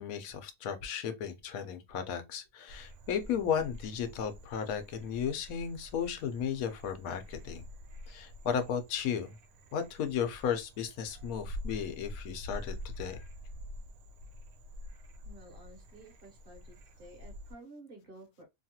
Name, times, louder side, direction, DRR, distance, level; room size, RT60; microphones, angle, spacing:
voice 1, 0.0-7.6 8.1-9.3 9.7-13.2, left 7 dB, 90° left, 1.1 m, -34 dB
Frog, 2.7-17.5, left 1 dB, 85° right, 1.1 m, -47 dB
voice 2, 15.2-18.4, right 2 dB, 45° right, 1.0 m, -53 dB
2.9 x 2.3 x 2.7 m
omnidirectional pair, 1.5 m